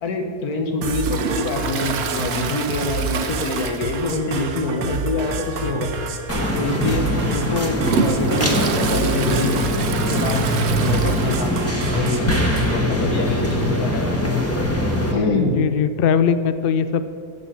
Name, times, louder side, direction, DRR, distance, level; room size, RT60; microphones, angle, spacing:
voice 1, 0.0-5.9 6.5-9.6 9.9-10.5 10.8-11.5 11.8-12.2 12.7-14.2 15.1-15.6, left 2 dB, 90° left, 4 dB, 1.8 m, -25 dB
sound 1, 0.8-12.8, right 3 dB, 80° right, 1.3 m, -29 dB
Toilet flush, 1.0-4.4 4.7-4.8 5.3-5.4 6.2-6.3 6.9-11.8 12.1-12.2 12.4-12.5 13.5-13.6, right 6 dB, 55° right, 0.8 m, -28 dB
sound 2, 6.3-15.1, left 1 dB, 10° left, 1.2 m, -22 dB
voice 2, 15.5-17.1, left 7 dB, 65° left, 12 dB, 0.5 m, -19 dB
14.0 x 5.4 x 7.4 m, 2.2 s
omnidirectional pair, 1.5 m